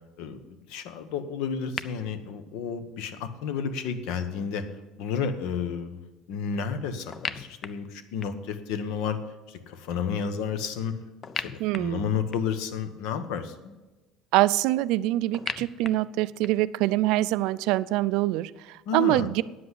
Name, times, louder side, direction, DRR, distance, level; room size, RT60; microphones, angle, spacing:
voice 1, 0.2-4.7 5.0-6.0 6.3-9.2 9.5-11.0 11.4-13.7 18.9-19.3, left 6 dB, 70° left, 9 dB, 1.1 m, -31 dB
sound 1, 1.8-1.9 7.1-8.5 11.2-12.6 15.3-16.7, left 6 dB, 25° left, 0.4 m, -37 dB
voice 2, 11.6-12.1 14.3-19.4, right 16 dB, 65° right, 17 dB, 0.3 m, -25 dB
9.7 x 7.8 x 8.0 m, 1.1 s
cardioid pair, 165°, 0 cm